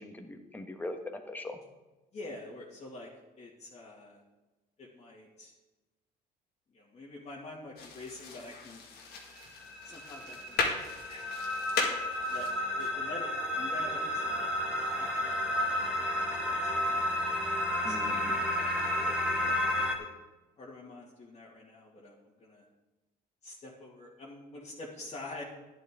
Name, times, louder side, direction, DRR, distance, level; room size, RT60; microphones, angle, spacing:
voice 1, 0.0-1.6 17.8-18.3, left 1 dB, 10° left, 4 dB, 1.3 m, -40 dB
voice 2, 2.1-3.1 3.4-4.2 4.8-5.5 6.7-8.8 9.8-11.4 12.3-13.3 13.5-14.5 14.8-17.0 17.8-18.2 19.0-19.6 20.0-20.1 20.6-22.1 22.4-22.6 23.4-25.4, left 2 dB, 40° left, -6 dB, 2.1 m, -47 dB
sound 1, 7.8-12.9, left 4 dB, 70° left, 2.0 m, -37 dB
sound 2, 9.4-20.0, left 1 dB, 5° right, 1.8 m, -32 dB
11.5 x 10.5 x 3.7 m, 1.1 s
cardioid pair, 110°, 17 cm